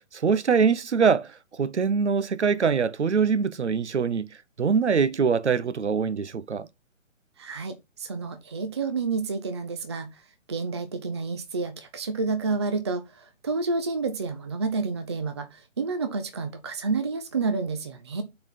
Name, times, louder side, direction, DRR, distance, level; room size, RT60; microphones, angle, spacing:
voice 1, 0.0-4.3 4.6-6.7, right 6 dB, 60° right, 0.7 m, -23 dB
voice 2, 7.4-10.1 10.5-18.2, right 4 dB, 20° right, 0.5 m, -29 dB
8.6 x 3.9 x 4.2 m
figure-of-eight pair, 135°, 39 cm